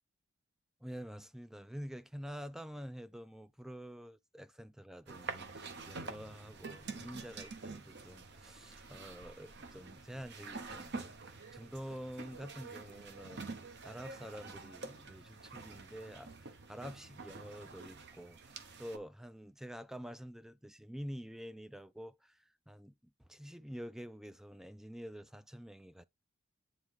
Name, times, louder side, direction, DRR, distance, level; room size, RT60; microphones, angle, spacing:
voice 1, 0.8-11.1 11.5-13.6 13.8-22.9 23.2-26.0, equal, ahead, 0.3 m, -48 dB
sound 1, 5.1-19.0, right 4 dB, 55° right, 1.0 m, -47 dB
9.1 x 3.1 x 3.6 m
head